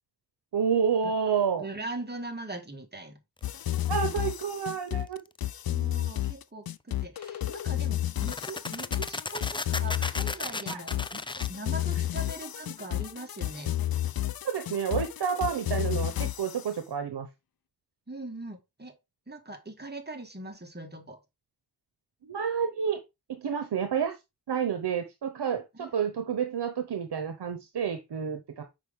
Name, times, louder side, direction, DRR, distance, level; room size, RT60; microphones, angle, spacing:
voice 1, 0.5-1.6 3.9-5.2 10.7-10.8 14.4-17.3 22.2-23.0 23.3-24.1 24.5-28.6, right 7 dB, 85° right, 0.9 m, -29 dB
voice 2, 1.6-3.2 5.7-11.2 11.5-13.7 18.1-19.0 19.3-21.2 25.7-25.9, right 2 dB, 25° right, 1.8 m, -41 dB
sound 1, 3.4-16.7, left 13 dB, 65° left, 0.5 m, -31 dB
sound 2, 3.7-4.1 7.2-7.3 7.8-7.9 8.2-11.5, left 3 dB, 15° left, 0.4 m, -35 dB
6.1 x 5.1 x 3.6 m
cardioid pair, 50°, 39 cm